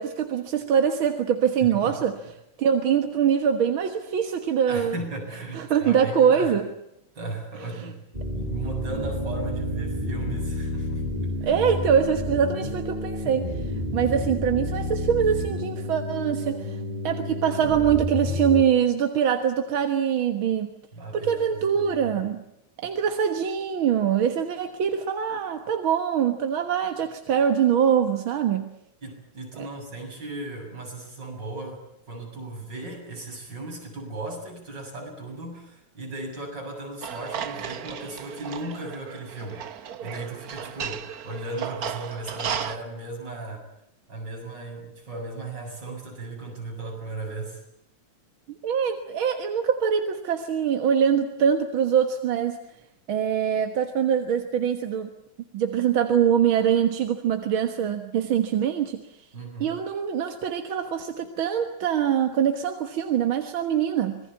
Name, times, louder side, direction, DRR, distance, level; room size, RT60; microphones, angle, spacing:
voice 1, 0.0-2.2 2.6-5.0 5.5-6.6 7.8-7.9 11.4-20.7 21.1-22.4 22.8-28.7 29.6-29.7 48.6-52.6 53.1-55.1 55.5-59.0 59.6-64.2, right 8 dB, 50° right, 6 dB, 1.9 m, -23 dB
voice 2, 1.6-2.0 4.7-6.5 7.1-8.0 8.3-11.6 20.9-22.1 29.0-43.6 44.1-47.6 59.3-59.7, right 2 dB, 35° right, 1 dB, 7.9 m, -36 dB
sound 1, 8.1-18.6, left 1 dB, 15° right, 3.9 m, -30 dB
sound 2, 37.0-42.8, right 8 dB, 80° right, 0.8 m, -35 dB
26.0 x 20.5 x 8.5 m, 0.78 s
omnidirectional pair, 3.3 m